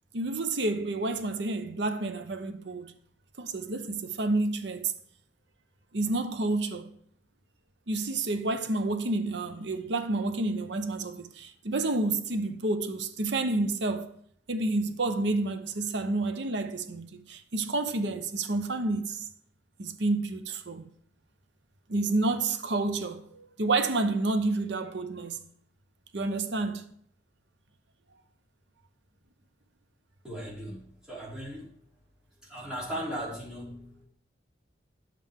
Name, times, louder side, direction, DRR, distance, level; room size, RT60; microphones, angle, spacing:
voice 1, 0.1-2.9 3.4-4.9 5.9-6.9 7.9-14.1 14.5-19.2 19.8-20.8 21.9-25.4 26.1-26.8, right 2 dB, 70° right, 0.8 m, -29 dB
voice 2, 30.2-31.7 32.4-34.1, equal, 5° right, 3.1 m, -38 dB
10.0 x 7.5 x 3.6 m
head